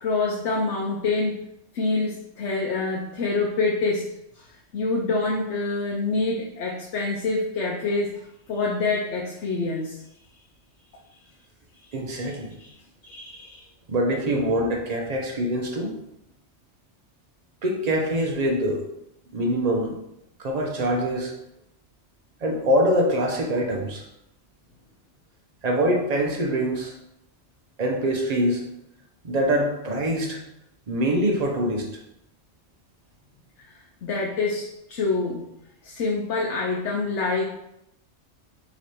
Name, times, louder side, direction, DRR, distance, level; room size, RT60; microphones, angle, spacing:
voice 1, 0.0-1.4 1.7-4.1 4.4-4.5 4.7-8.1 8.5-10.0 12.2-12.3 12.6-12.7 13.0-13.6 34.0-35.5 35.8-37.5, left 3 dB, 75° left, -1 dB, 0.9 m, -26 dB
voice 2, 11.9-12.5 13.9-16.0 17.6-18.8 19.3-19.9 20.4-21.3 22.4-24.0 25.6-26.9 27.8-28.6 29.2-30.4 30.9-31.9, equal, 40° right, 1 dB, 0.7 m, -24 dB
3.2 x 3.0 x 4.1 m, 0.81 s
omnidirectional pair, 1.2 m